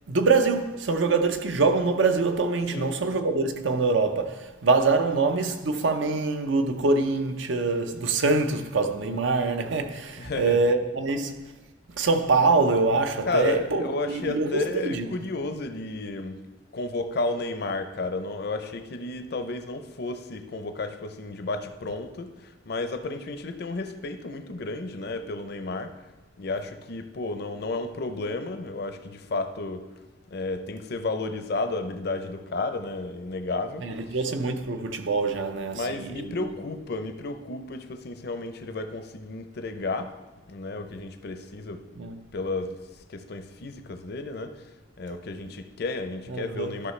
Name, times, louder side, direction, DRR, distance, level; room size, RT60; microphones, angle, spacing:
voice 1, 0.1-11.5 11.9-15.1 33.8-36.5 41.9-42.2 46.3-46.7, right 3 dB, 70° right, 0.7 m, -24 dB
voice 2, 10.2-10.6 13.3-16.4 16.7-26.0 26.4-29.8 30.3-34.0 35.7-40.2 40.5-41.9 42.3-42.8 43.1-44.7 45.0-46.9, left 2 dB, 55° left, 0.6 m, -32 dB
12.0 x 5.7 x 3.2 m
head